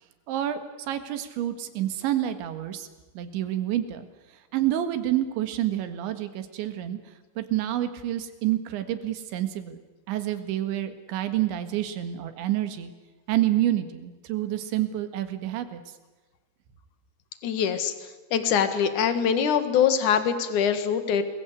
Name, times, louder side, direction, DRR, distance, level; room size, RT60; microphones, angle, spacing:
voice 1, 0.3-2.9 3.2-4.1 4.5-7.0 7.4-9.8 10.1-12.9 13.3-15.8, right 13 dB, 70° right, 9 dB, 3.9 m, -28 dB
voice 2, 17.4-17.9 18.3-21.2, left 7 dB, 55° left, 10 dB, 2.4 m, -23 dB
28.5 x 21.5 x 8.3 m, 1.2 s
omnidirectional pair, 5.7 m